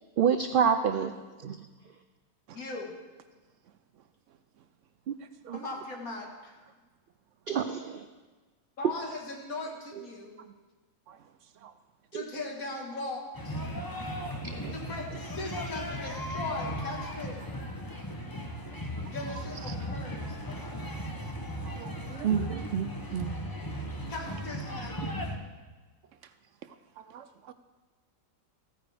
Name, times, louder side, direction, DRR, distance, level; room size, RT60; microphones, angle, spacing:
voice 1, 0.2-1.1 1.4-1.7 5.1-5.2 5.4-5.6 7.5-8.1 12.1-12.2 14.4-14.7 22.2-23.3, right 7 dB, 90° right, 8 dB, 0.4 m, -28 dB
voice 2, 2.5-3.0 5.5-6.6 8.8-10.4 12.1-13.6 14.7-17.4 19.1-21.0 24.1-25.1, left 2 dB, 75° left, 0 dB, 2.1 m, -39 dB
voice 3, 5.2-5.6 10.4-10.5 11.1-11.2 11.6-11.7 14.2-14.3 18.7-18.8 19.1-19.8 21.6-22.6 26.6-27.5, right 9 dB, 70° right, 11 dB, 0.8 m, -47 dB
sound 1, 13.3-25.4, equal, 20° left, 0.7 m, -37 dB
14.5 x 9.3 x 3.4 m, 1.3 s
omnidirectional pair, 1.5 m